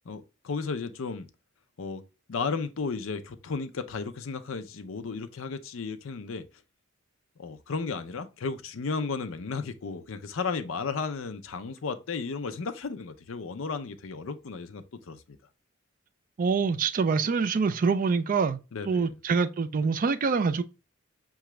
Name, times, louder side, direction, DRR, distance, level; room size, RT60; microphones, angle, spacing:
voice 1, 0.1-1.3 1.8-2.0 2.3-6.4 7.4-15.2 18.7-19.1, left 4 dB, 70° left, 0.5 m, -34 dB
voice 2, 16.4-18.6 18.9-20.6, right 5 dB, 45° right, 0.4 m, -25 dB
5.7 x 2.3 x 3.0 m
head